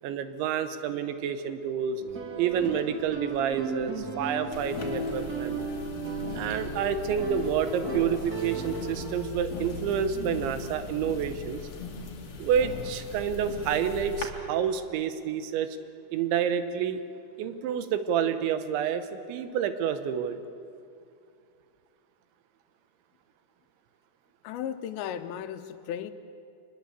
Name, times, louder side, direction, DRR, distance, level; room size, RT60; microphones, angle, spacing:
voice 1, 0.0-2.0 2.4-5.6 6.3-11.6 12.4-15.7 16.1-17.0 17.4-20.4, right 8 dB, 80° right, 10 dB, 3.4 m, -29 dB
sound 1, 2.0-9.2, right 2 dB, 40° right, 1.4 m, -35 dB
sound 2, 4.5-14.3, left 5 dB, 45° left, 2.8 m, -39 dB
voice 2, 24.4-26.1, left 9 dB, 80° left, 9 dB, 3.0 m, -35 dB
23.5 x 21.0 x 8.3 m, 2.4 s
omnidirectional pair, 5.3 m